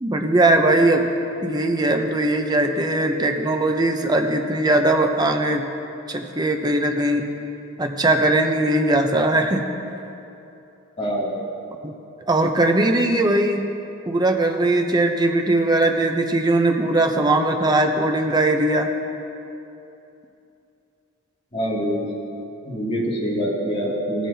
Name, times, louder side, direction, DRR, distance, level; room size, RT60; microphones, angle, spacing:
voice 1, 0.0-1.1 1.4-5.6 6.1-7.3 7.8-9.6 12.3-13.7 14.1-18.9, right 2 dB, 20° right, 4 dB, 0.6 m, -20 dB
voice 2, 11.0-11.3 21.5-22.1 22.6-24.3, equal, 30° left, -7 dB, 2.4 m, -25 dB
17.0 x 9.1 x 2.8 m, 2.8 s
head